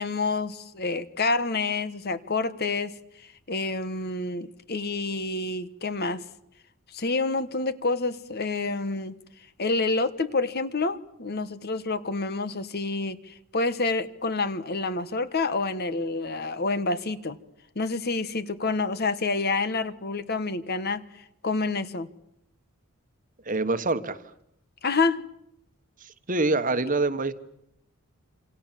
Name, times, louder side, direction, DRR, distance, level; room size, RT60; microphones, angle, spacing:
voice 1, 0.0-6.2 6.9-9.2 9.6-17.4 17.7-21.0 21.4-22.1 24.8-25.2, left 3 dB, 45° left, 1.3 m, -28 dB
voice 2, 23.4-24.2 26.0-27.3, right 3 dB, 35° right, 1.3 m, -25 dB
27.5 x 26.0 x 7.5 m
head